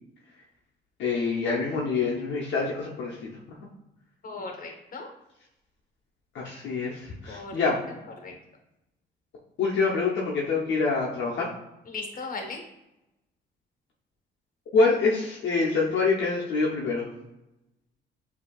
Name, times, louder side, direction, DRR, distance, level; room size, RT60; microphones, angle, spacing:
voice 1, 1.0-3.6 6.3-7.8 9.6-11.5 14.7-17.1, left 4 dB, 70° left, -3 dB, 0.8 m, -26 dB
voice 2, 4.2-5.1 7.3-7.7 8.2-8.3 11.9-12.6, left 3 dB, 45° left, 2 dB, 1.1 m, -37 dB
6.8 x 2.8 x 2.3 m, 0.94 s
cardioid pair, 90°, 20 cm